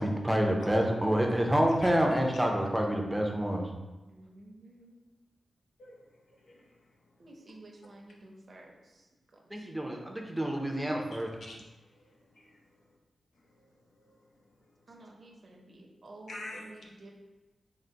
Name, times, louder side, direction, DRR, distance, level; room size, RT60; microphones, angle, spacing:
voice 1, 0.0-3.7 9.5-11.3, equal, 5° right, 1 dB, 0.5 m, -28 dB
voice 2, 4.1-5.0 7.2-9.7 14.9-17.1, right 2 dB, 50° right, 0 dB, 0.7 m, -52 dB
voice 3, 5.8-7.0 11.1-12.6 13.6-13.7 14.0-14.2 16.3-16.7, left 2 dB, 90° left, -2 dB, 0.6 m, -48 dB
3.8 x 2.0 x 4.4 m, 1.1 s
wide cardioid pair, 140°, 0 cm